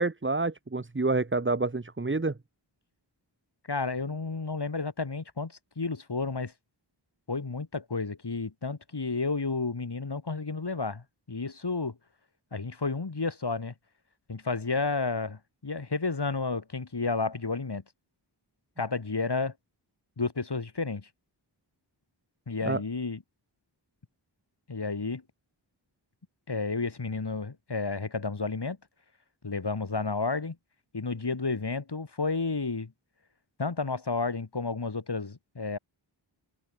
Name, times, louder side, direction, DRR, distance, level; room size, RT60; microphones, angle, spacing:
voice 1, 0.0-2.3 22.6-22.8, right 3 dB, 25° right, 1.1 m, -28 dB
voice 2, 3.7-6.5 7.3-12.0 12.5-13.7 14.3-17.8 18.8-19.5 20.2-21.1 22.5-23.2 24.7-25.2 26.5-28.8 29.4-30.6 30.9-32.9 33.6-35.8, left 4 dB, 55° left, 2.4 m, -31 dB
wide cardioid pair, 55°, 47 cm